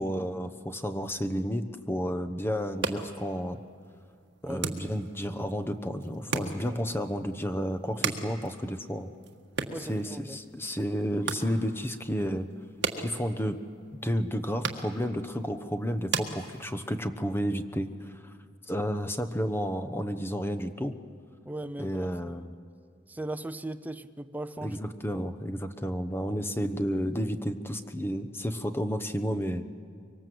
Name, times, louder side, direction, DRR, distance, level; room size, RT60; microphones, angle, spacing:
voice 1, 0.0-3.6 4.4-9.1 9.7-12.5 13.0-13.6 14.0-18.3 18.7-20.9 21.8-22.5 24.6-29.6, equal, 10° left, 1.0 m, -31 dB
sound 1, 2.6-17.1, right 5 dB, 60° right, 1.6 m, -38 dB
voice 2, 9.7-10.4 21.4-22.1 23.1-24.8 25.1-25.2, right 1 dB, 10° right, 0.6 m, -38 dB
24.5 x 23.5 x 7.8 m
head